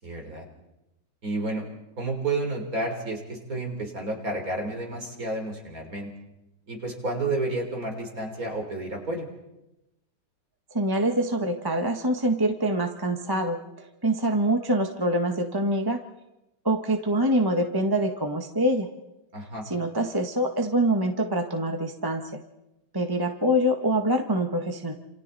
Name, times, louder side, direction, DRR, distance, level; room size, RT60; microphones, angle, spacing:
voice 1, 0.0-0.5 1.2-1.7 2.0-6.1 6.7-9.3 19.3-19.7, right 2 dB, 50° right, 2 dB, 4.4 m, -31 dB
voice 2, 10.7-16.0 16.6-18.9 19.6-22.2 22.9-24.9, right 1 dB, 15° right, 3 dB, 1.4 m, -25 dB
28.5 x 28.0 x 4.2 m, 0.93 s
omnidirectional pair, 2.0 m